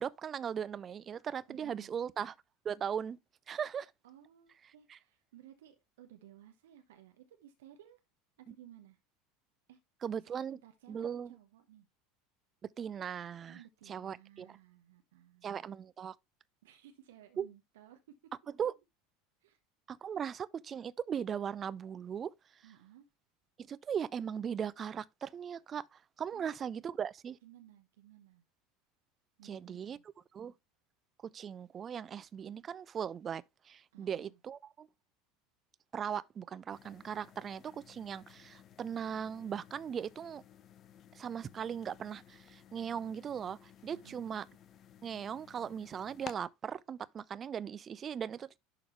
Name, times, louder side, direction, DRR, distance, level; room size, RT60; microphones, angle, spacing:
voice 1, 0.0-2.3 2.6-3.2 3.5-3.9 10.0-10.6 10.9-11.3 12.8-13.6 13.9-14.5 15.4-16.2 17.4-17.5 18.6-18.7 19.9-22.3 23.7-25.8 26.2-27.4 29.4-30.0 30.3-30.5 31.3-34.9 35.9-40.4 41.1-44.4 45.0-48.6, right 8 dB, 30° right, 0.5 m, -38 dB
voice 2, 1.5-2.0 4.0-8.0 8.4-9.0 9.7-9.8 10.2-11.9 13.5-15.5 16.6-18.3 19.4-19.6 22.6-23.1 26.3-26.7 27.4-28.4 29.4-30.0 33.9-34.4 43.9-44.4, right 11 dB, 65° right, 1.0 m, -58 dB
sound 1, 36.7-46.3, left 9 dB, 40° left, 0.7 m, -56 dB
11.0 x 3.9 x 3.1 m
figure-of-eight pair, 75°, 0 cm